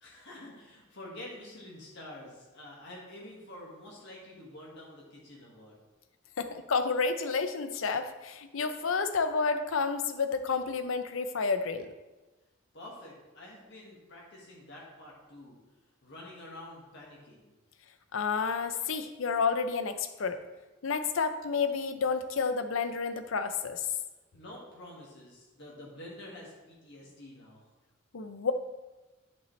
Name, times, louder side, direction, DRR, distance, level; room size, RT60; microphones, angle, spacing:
voice 1, 0.0-5.8 12.7-15.6 16.0-17.5 24.3-27.7, left 1 dB, 60° left, -4 dB, 1.7 m, -48 dB
voice 2, 6.4-11.9 18.1-20.4 20.8-23.9 28.1-28.5, left 5 dB, 80° left, 9 dB, 0.6 m, -30 dB
10.5 x 5.5 x 3.2 m, 1.1 s
head